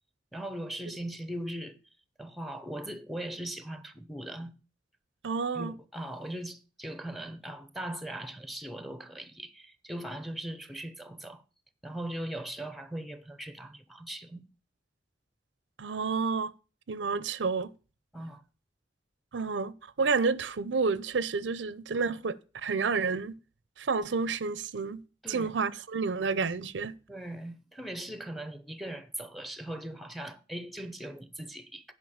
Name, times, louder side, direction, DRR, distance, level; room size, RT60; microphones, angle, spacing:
voice 1, 0.3-1.8 2.2-4.5 5.5-11.4 11.8-14.5 18.1-18.4 25.2-25.5 27.1-31.9, right 1 dB, ahead, 0.7 m, -39 dB
voice 2, 5.2-5.7 15.8-16.5 16.9-17.7 19.3-22.4 22.6-23.3 23.8-25.0 25.3-26.9, right 4 dB, 85° right, 0.6 m, -30 dB
9.4 x 5.3 x 7.1 m
head